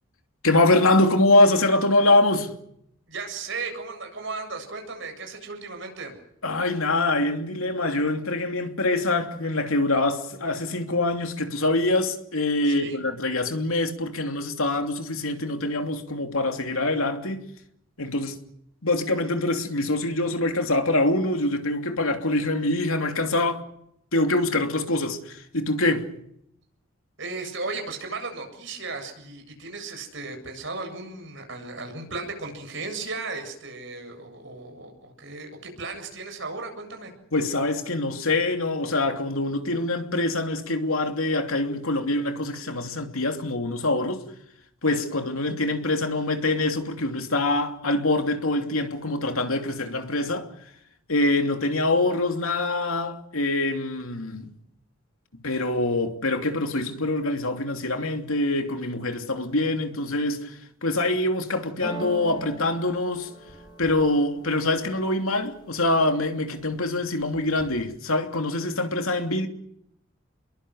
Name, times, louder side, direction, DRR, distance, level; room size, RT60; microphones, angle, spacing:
voice 1, 0.4-2.5 6.4-17.5 18.0-18.4 18.8-23.6 24.1-26.1 37.3-44.2 44.8-50.5 51.1-54.5 55.4-63.3 63.8-69.5, left 2 dB, 75° left, 2.9 m, -24 dB
voice 2, 3.1-6.1 12.6-13.0 27.2-37.1, right 3 dB, 60° right, 7.8 m, -35 dB
sound 1, 61.8-65.7 66.1-66.7 67.0-67.8, right 1 dB, 20° left, 6.8 m, -41 dB
28.5 x 22.5 x 6.4 m
head